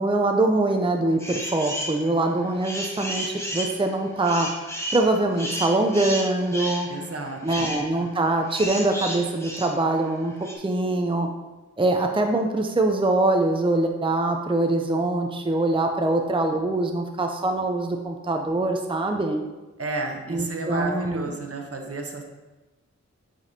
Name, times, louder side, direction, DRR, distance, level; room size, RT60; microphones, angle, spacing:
voice 1, 0.0-4.5 4.9-6.9 7.4-11.3 11.8-19.4 20.3-21.3, right 2 dB, 15° right, 3 dB, 0.6 m, -23 dB
sound 1, 1.2-2.0 2.4-10.5, equal, 10° left, 1.6 m, -33 dB
voice 2, 6.9-7.7 19.8-22.2, right 3 dB, 50° right, 3 dB, 1.0 m, -32 dB
7.8 x 5.2 x 2.8 m, 1.2 s
cardioid pair, 40°, 29 cm